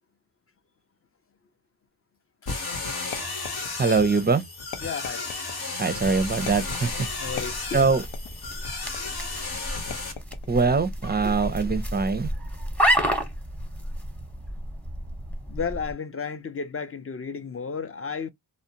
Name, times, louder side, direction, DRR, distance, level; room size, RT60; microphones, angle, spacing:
sound 1, 2.5-10.1, left 3 dB, 60° left, 0.9 m, -33 dB
sound 2, 3.1-4.1 4.7-5.6 6.5-6.9 7.4-8.4 8.9-9.3 9.9-10.6 11.3-11.8, left 8 dB, 80° left, 0.6 m, -41 dB
voice 1, 3.8-4.4 5.8-7.1 7.7-8.0 10.5-12.3, right 4 dB, 25° right, 0.4 m, -23 dB
voice 2, 4.8-5.2 7.2-7.8 11.2-11.3 15.5-18.3, left 5 dB, 35° left, 0.4 m, -33 dB
sound 3, 6.0-15.9, equal, 5° left, 0.8 m, -31 dB
2.5 x 2.1 x 2.7 m
cardioid pair, 60°, 43 cm